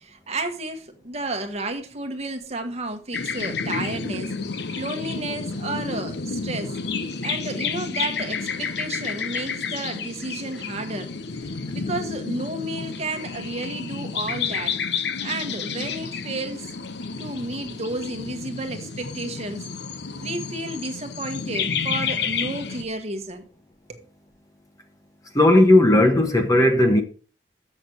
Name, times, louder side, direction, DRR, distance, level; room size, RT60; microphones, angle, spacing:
voice 1, 0.0-4.4 4.8-6.7 7.2-11.1 11.7-14.7 15.2-16.7 17.2-19.7 20.2-23.5 23.9-24.0, right 2 dB, 35° right, 1.3 m, -32 dB
sound 1, 3.1-22.8, left 5 dB, 65° left, 0.8 m, -30 dB
voice 2, 25.3-27.0, left 1 dB, 20° left, 1.2 m, -16 dB
7.5 x 6.2 x 6.4 m
head